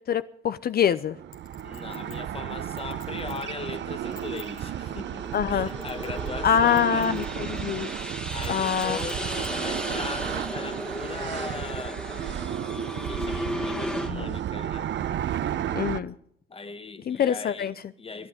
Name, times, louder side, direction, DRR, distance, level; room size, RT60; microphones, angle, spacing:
voice 1, 0.1-1.1 5.3-5.7 6.4-7.9 8.5-9.0 14.1-14.2 15.7-16.1 17.1-17.7, left 8 dB, 50° left, 0.6 m, -24 dB
sound 1, 1.1-16.0, right 10 dB, 65° right, 0.8 m, -33 dB
Chink clink, 1.3-3.5 4.0-4.6 5.3-6.4 6.7-7.3 7.6-7.7 8.3-9.5 10.0-10.1, left 9 dB, 85° left, 2.6 m, -50 dB
voice 2, 1.6-7.1 8.3-12.4 13.0-14.9 16.5-18.3, left 4 dB, 30° left, 1.4 m, -39 dB
sound 2, 4.0-14.1, equal, 5° left, 1.7 m, -36 dB
24.0 x 9.8 x 5.0 m
cardioid pair, 90°, 20 cm